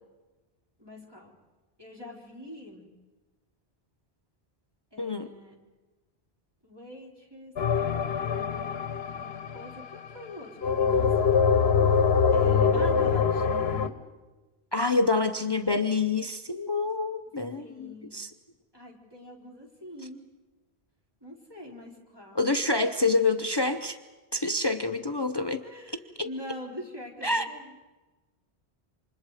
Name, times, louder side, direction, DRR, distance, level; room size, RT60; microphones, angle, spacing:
voice 1, 0.8-1.4 1.8-2.8 4.9-5.6 6.6-7.5 8.1-11.3 12.3-14.0 17.6-18.2 18.7-20.2 21.2-22.8 24.5-24.6 25.6-27.8, left 1 dB, 20° right, -2 dB, 4.1 m, -44 dB
voice 2, 5.0-5.3 14.7-18.3 22.4-24.0 24.3-25.6 26.2-26.3 27.2-27.5, left 3 dB, 25° left, 9 dB, 0.7 m, -27 dB
sound 1, 7.6-10.0 10.6-13.9, left 6 dB, 75° left, 1.2 m, -24 dB
28.5 x 26.0 x 4.9 m, 1.2 s
omnidirectional pair, 1.1 m